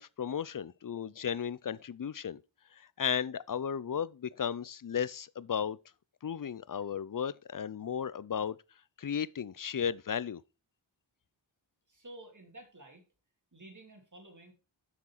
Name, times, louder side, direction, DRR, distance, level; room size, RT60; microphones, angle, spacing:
voice 1, 0.0-2.4 2.7-5.8 6.2-8.6 9.0-10.4, left 8 dB, 45° left, 0.5 m, -35 dB
voice 2, 11.9-13.0 13.5-14.5, right 1 dB, 40° right, 2.8 m, -51 dB
7.3 x 6.2 x 4.5 m
wide cardioid pair, 60°, 47 cm